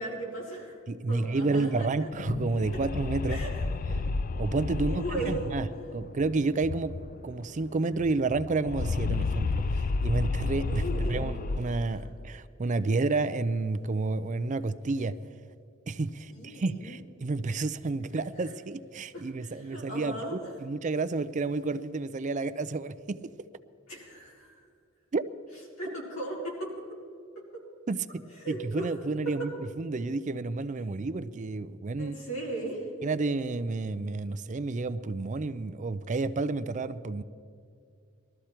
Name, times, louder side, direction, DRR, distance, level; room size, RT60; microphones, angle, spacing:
voice 1, 0.0-0.8 1.1-2.1 3.3-3.5 4.9-5.4 10.7-11.3 11.9-12.0 16.3-17.0 19.1-20.5 23.9-24.7 25.8-26.7 28.3-28.9 29.4-29.5 32.0-32.9, right 1 dB, 90° left, -4 dB, 4.4 m, -37 dB
voice 2, 0.9-3.4 4.3-5.7 5.9-7.0 7.2-10.8 11.1-15.2 15.9-23.3 25.1-25.2 27.9-29.5 29.8-32.2 33.0-37.2, right 3 dB, 35° right, 13 dB, 0.5 m, -30 dB
sound 1, 2.0-7.3 7.6-7.7 7.9-12.3, left 3 dB, 45° left, 0.4 m, -32 dB
20.5 x 13.5 x 4.4 m, 2.4 s
head